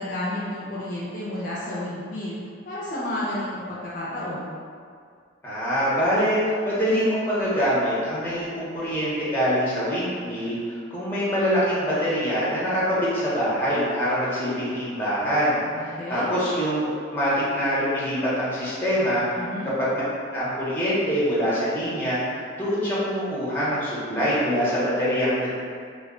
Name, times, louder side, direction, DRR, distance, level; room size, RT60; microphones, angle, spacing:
voice 1, 0.0-2.4 2.7-4.5 15.5-16.3 19.3-19.7, left 1 dB, 45° left, -8 dB, 0.4 m, -31 dB
voice 2, 5.4-19.2 19.6-20.0 20.3-22.2 22.6-25.5, equal, 10° left, -9 dB, 0.7 m, -24 dB
2.2 x 2.1 x 3.6 m, 2.2 s
head